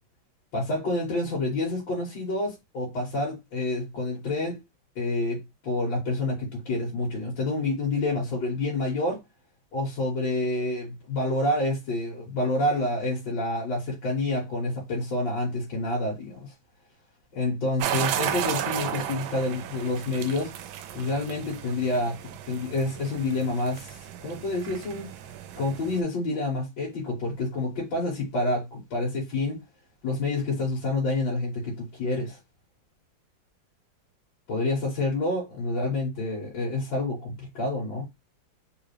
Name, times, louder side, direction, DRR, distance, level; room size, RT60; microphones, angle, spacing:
voice 1, 0.5-4.6 5.0-9.2 9.7-16.5 17.3-20.5 20.9-22.2 22.5-25.1 25.6-29.6 30.0-32.4 34.5-38.0, left 2 dB, 75° left, 2.0 m, -28 dB
sound 1, 17.8-26.0, right 10 dB, 90° right, 1.4 m, -34 dB
3.8 x 3.2 x 3.2 m
omnidirectional pair, 2.1 m